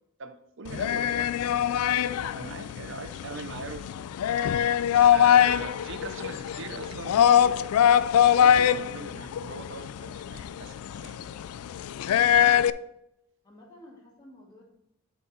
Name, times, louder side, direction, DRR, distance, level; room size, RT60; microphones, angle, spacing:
voice 1, 0.2-3.9 4.4-4.5 4.9-7.8 8.3-11.4 11.8-12.4, right 3 dB, 55° right, 9 dB, 0.7 m, -41 dB
sound 1, 0.7-12.7, left 9 dB, 85° left, 0.3 m, -23 dB
voice 2, 13.4-14.7, left 1 dB, 20° left, -2 dB, 1.9 m, -52 dB
9.9 x 3.9 x 4.0 m, 0.83 s
head